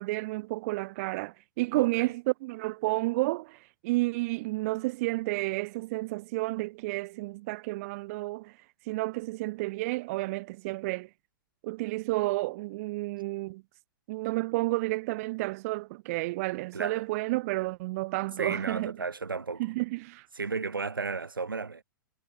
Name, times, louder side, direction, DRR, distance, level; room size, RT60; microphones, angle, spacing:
voice 1, 0.0-8.5 8.9-11.1 11.6-13.6 14.1-18.9 19.6-20.3, right 22 dB, 45° right, 0.6 m, -31 dB
voice 2, 1.7-2.1 16.7-17.0 18.4-19.7 20.3-21.8, right 4 dB, 85° right, 1.6 m, -34 dB
figure-of-eight pair, 110°, 11 cm